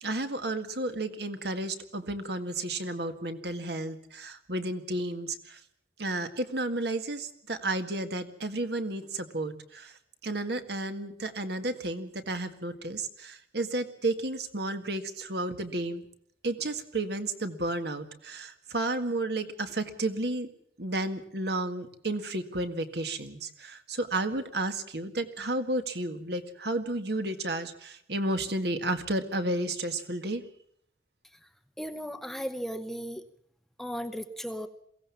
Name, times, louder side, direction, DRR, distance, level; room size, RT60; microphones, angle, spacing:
voice 1, 0.0-5.6 6.0-10.0 10.2-16.0 16.4-20.5 20.8-30.4, right 2 dB, 60° right, 8 dB, 1.9 m, -32 dB
voice 2, 31.8-33.2 33.8-34.7, equal, ahead, 7 dB, 0.8 m, -36 dB
22.5 x 16.5 x 7.2 m, 0.69 s
head